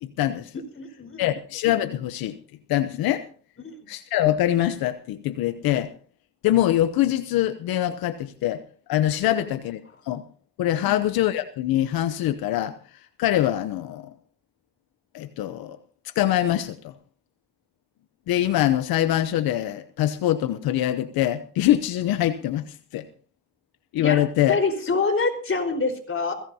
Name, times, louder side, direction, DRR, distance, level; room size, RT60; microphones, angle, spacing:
voice 1, 0.0-0.5 1.2-2.3 2.7-3.2 3.9-5.9 6.4-8.6 8.9-10.2 10.6-14.1 15.1-15.8 16.2-16.9 18.3-23.0 23.9-24.6, left 13 dB, 85° left, 12 dB, 0.8 m, -24 dB
voice 2, 0.8-1.3 3.6-3.8 9.2-9.5 10.8-11.0 24.0-24.2 24.5-26.3, left 4 dB, 35° left, 6 dB, 4.7 m, -26 dB
21.5 x 16.5 x 2.8 m, 0.43 s
cardioid pair, 70°, 35 cm